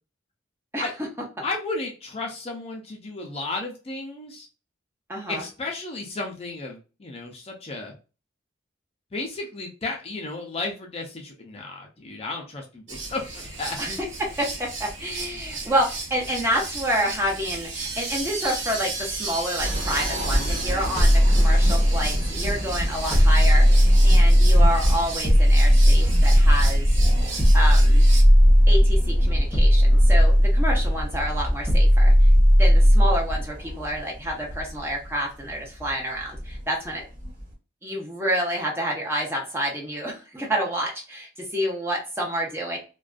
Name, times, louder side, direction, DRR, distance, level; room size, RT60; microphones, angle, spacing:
voice 1, 1.4-4.5 5.3-7.9 9.1-13.8, left 3 dB, 30° left, 1 dB, 0.4 m, -33 dB
voice 2, 5.1-5.4 13.8-26.9 27.5-28.1 28.7-32.3 32.6-37.0 37.8-42.8, equal, 10° right, -1 dB, 0.6 m, -28 dB
sound 1, 12.9-28.2, right 3 dB, 75° right, 0.8 m, -34 dB
sound 2, 19.6-37.5, equal, 50° right, 1.5 m, -26 dB
sound 3, 21.0-22.3 23.1-24.7 25.2-26.7 27.4-29.0 29.5-30.9 31.7-33.3, equal, 5° left, 1.0 m, -16 dB
2.4 x 2.2 x 2.4 m, 0.32 s
head